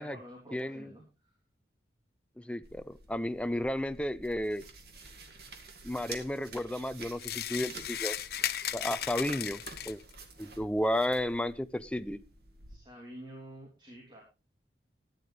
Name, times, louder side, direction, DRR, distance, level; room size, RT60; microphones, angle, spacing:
voice 1, 0.0-1.3 12.7-14.2, right 1 dB, 25° right, 3.1 m, -49 dB
voice 2, 0.5-0.9 2.4-4.6 5.8-8.2 8.7-10.0 10.4-12.2, left 1 dB, 5° left, 0.5 m, -33 dB
sound 1, 2.6-12.8, right 3 dB, 60° right, 2.3 m, -50 dB
sound 2, 7.2-10.1, left 10 dB, 60° left, 0.7 m, -36 dB
14.5 x 10.5 x 3.4 m
head